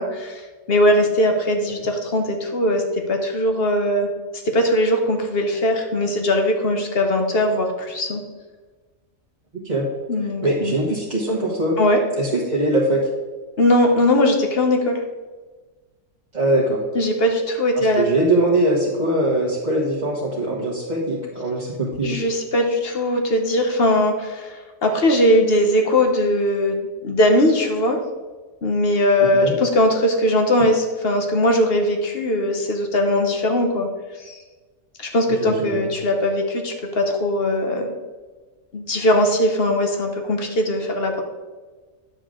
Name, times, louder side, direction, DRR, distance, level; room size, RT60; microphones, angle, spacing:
voice 1, 0.0-4.1 4.5-8.2 10.1-10.8 11.8-12.0 13.6-15.0 16.9-18.1 22.0-28.0 28.6-33.9 34.2-34.4 35.0-37.9 38.7-41.2, left 1 dB, 50° left, 4 dB, 1.2 m, -20 dB
voice 2, 10.4-11.8 12.2-13.0 16.3-16.8 17.7-22.2 29.4-29.5 35.4-35.8, right 1 dB, 35° right, -6 dB, 1.5 m, -21 dB
9.4 x 6.9 x 3.8 m, 1.3 s
omnidirectional pair, 1.4 m